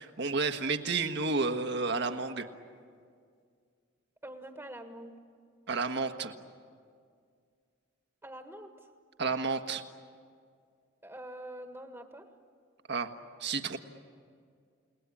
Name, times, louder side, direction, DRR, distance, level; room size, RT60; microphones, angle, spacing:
voice 1, 0.0-2.4 5.7-6.3 9.2-9.8 12.9-13.1 13.4-13.8, right 4 dB, 60° right, 7 dB, 1.5 m, -31 dB
voice 2, 4.2-5.2 8.2-8.7 11.0-12.3, right 1 dB, 10° right, 5 dB, 1.6 m, -45 dB
30.0 x 19.0 x 10.0 m, 2.1 s
head